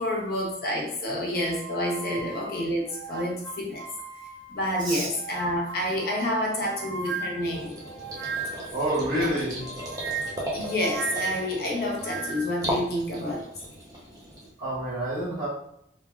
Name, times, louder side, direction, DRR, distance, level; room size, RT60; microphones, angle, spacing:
voice 1, 0.0-3.9 4.5-7.7 9.2-9.3 10.5-13.5, left 1 dB, 55° left, -1 dB, 0.6 m, -29 dB
sound 1, 1.4-4.6 5.1-8.8 9.6-12.6, right 4 dB, 80° right, 0.4 m, -37 dB
sound 2, 7.4-14.5, equal, 20° right, 0.5 m, -37 dB
voice 2, 8.7-9.7 14.6-15.5, right 1 dB, 45° right, -9 dB, 1.4 m, -28 dB
3.1 x 2.1 x 2.2 m, 0.74 s
head